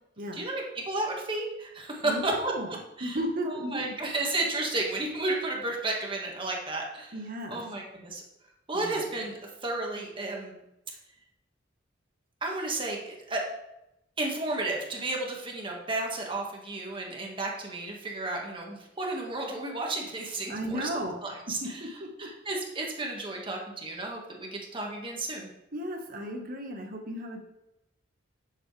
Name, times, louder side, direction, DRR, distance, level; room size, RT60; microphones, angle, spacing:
voice 1, 0.3-2.5 3.0-3.2 3.5-7.1 7.5-8.2 8.7-10.6 12.4-13.4 14.2-20.9 21.2-21.9 22.2-25.5, right 2 dB, 25° right, -1 dB, 1.8 m, -32 dB
voice 2, 2.0-2.7 3.0-3.9 7.1-7.6 8.7-9.0 20.5-21.1 21.6-22.3 25.7-27.4, equal, 50° right, 3 dB, 1.5 m, -35 dB
10.0 x 7.4 x 3.4 m, 0.89 s
head